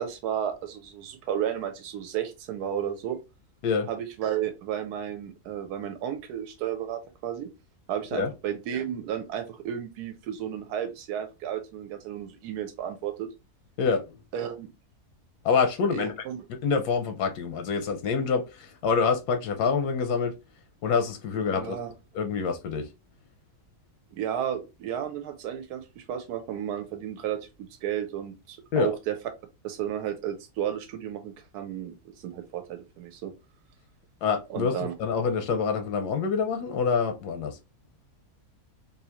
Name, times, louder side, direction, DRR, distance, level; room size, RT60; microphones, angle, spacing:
voice 1, 0.0-3.2 3.9-7.5 7.9-13.3 14.3-14.7 15.9-16.4 21.5-21.9 24.1-29.2 29.6-33.3 34.5-34.9, right 10 dB, 90° right, 1.2 m, -33 dB
voice 2, 13.8-14.2 15.4-16.1 16.6-20.3 20.8-21.8 22.1-22.9 28.7-28.9 34.2-37.6, left 5 dB, 85° left, 1.2 m, -26 dB
3.6 x 2.7 x 2.8 m
omnidirectional pair, 1.6 m